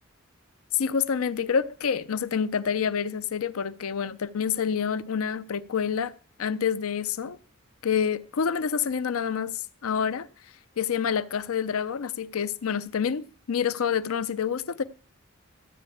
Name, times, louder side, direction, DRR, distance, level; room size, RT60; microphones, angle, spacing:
voice 1, 0.7-6.1 6.4-7.4 7.8-10.3 10.8-14.8, left 7 dB, 80° left, 0.5 m, -27 dB
13.5 x 4.8 x 8.5 m
head